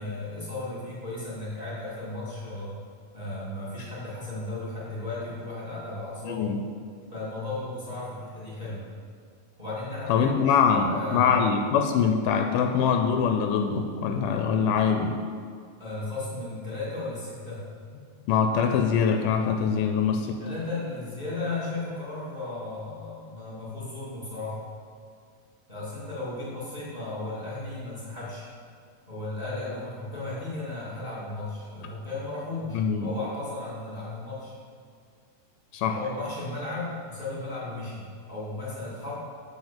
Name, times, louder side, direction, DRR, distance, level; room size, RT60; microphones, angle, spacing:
voice 1, 0.0-2.7 3.1-6.5 7.1-8.9 9.6-11.5 15.8-17.7 20.2-24.6 25.7-28.5 29.1-34.5 35.8-39.1, left 2 dB, 15° right, -8 dB, 1.9 m, -35 dB
voice 2, 6.2-6.6 10.1-15.2 18.3-20.4 32.7-33.1 35.7-35.9, left 6 dB, 85° left, 5 dB, 2.1 m, -23 dB
7.8 x 4.5 x 7.1 m, 2.2 s
omnidirectional pair, 3.8 m